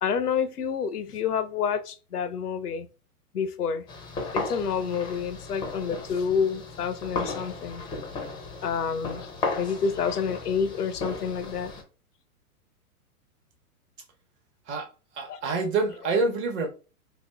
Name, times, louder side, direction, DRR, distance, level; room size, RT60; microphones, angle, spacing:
voice 1, 0.0-2.9 3.3-3.8 4.3-7.8 8.6-9.3 9.6-11.7 15.3-15.4 16.0-16.2, left 6 dB, 90° left, 0.6 m, -28 dB
sound 1, 3.9-11.8, left 3 dB, 10° left, 0.5 m, -35 dB
voice 2, 15.2-16.7, right 3 dB, 25° right, 0.8 m, -26 dB
4.2 x 2.5 x 2.2 m
hypercardioid pair, 110°, 45 cm